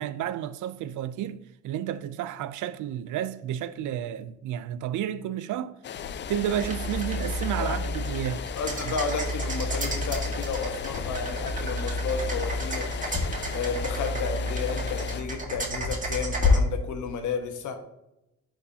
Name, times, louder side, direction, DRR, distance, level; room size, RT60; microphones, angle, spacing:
voice 1, 0.0-1.4 1.6-5.7 6.3-8.4 8.8-8.9, right 11 dB, 80° right, 0.5 m, -31 dB
sound 1, 5.8-15.2, left 9 dB, 40° left, 0.4 m, -38 dB
sound 2, 5.9-16.5, left 2 dB, 60° left, 2.0 m, -31 dB
sound 3, 6.6-16.6, right 2 dB, 25° right, 1.9 m, -36 dB
voice 2, 8.5-12.9 13.5-17.8, left 5 dB, 80° left, 1.3 m, -32 dB
11.0 x 4.4 x 2.8 m
cardioid pair, 90°, 30 cm